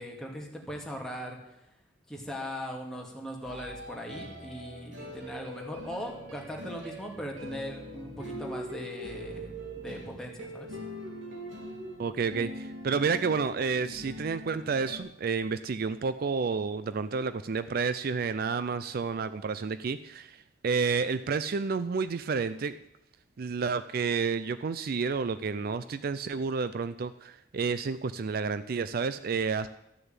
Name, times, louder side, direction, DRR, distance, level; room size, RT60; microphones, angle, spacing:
voice 1, 0.0-1.7 2.1-10.8, equal, 5° left, -1 dB, 2.3 m, -39 dB
sound 1, 3.4-15.0, equal, 75° right, 2.7 m, -42 dB
voice 2, 12.0-22.8 23.4-29.7, right 5 dB, 50° right, 13 dB, 0.4 m, -30 dB
13.0 x 6.7 x 8.9 m, 0.85 s
head